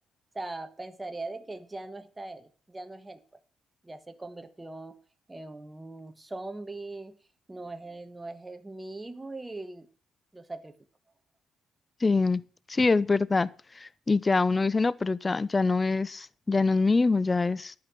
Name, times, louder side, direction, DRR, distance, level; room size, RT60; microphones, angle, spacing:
voice 1, 0.3-3.2 3.8-5.0 5.3-7.2 7.5-9.9 10.3-10.7, right 2 dB, 15° right, 1.3 m, -40 dB
voice 2, 12.0-12.4 12.7-13.5 13.8-17.7, left 3 dB, 25° left, 0.5 m, -24 dB
12.0 x 5.8 x 8.3 m
cardioid pair, 90°, 0 cm